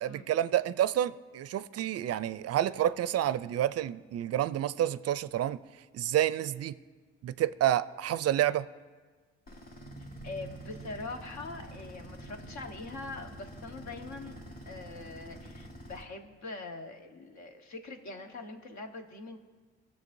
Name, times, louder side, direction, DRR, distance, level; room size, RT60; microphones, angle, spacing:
voice 1, 0.0-5.6 5.9-6.8 7.2-8.7, right 12 dB, 50° right, 16 dB, 0.4 m, -29 dB
sound 1, 9.5-16.0, right 1 dB, 30° left, 1.7 m, -46 dB
voice 2, 10.2-19.4, left 3 dB, 65° left, 5 dB, 1.3 m, -43 dB
20.0 x 7.2 x 2.7 m, 1.4 s
supercardioid pair, 70°, 31 cm